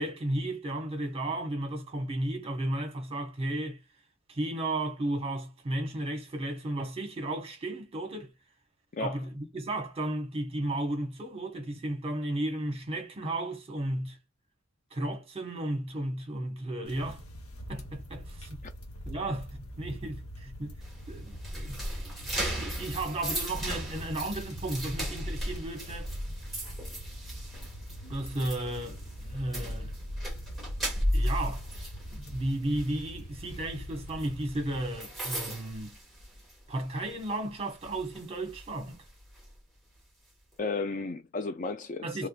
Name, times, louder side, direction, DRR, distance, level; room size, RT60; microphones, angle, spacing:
voice 1, 0.0-3.8 4.3-8.3 9.0-14.2 14.9-17.2 17.7-18.6 19.1-20.7 21.1-26.1 28.1-29.9 31.1-31.6 32.1-36.0 36.7-39.0 42.0-42.3, right 1 dB, 30° right, 1.1 m, -34 dB
sound 1, 16.9-35.2, equal, 90° left, 1.0 m, -44 dB
sound 2, 20.8-36.7 37.1-37.3 37.8-39.5, equal, ahead, 1.5 m, -36 dB
voice 2, 40.6-42.3, left 3 dB, 40° left, 0.4 m, -33 dB
3.5 x 3.2 x 2.3 m
head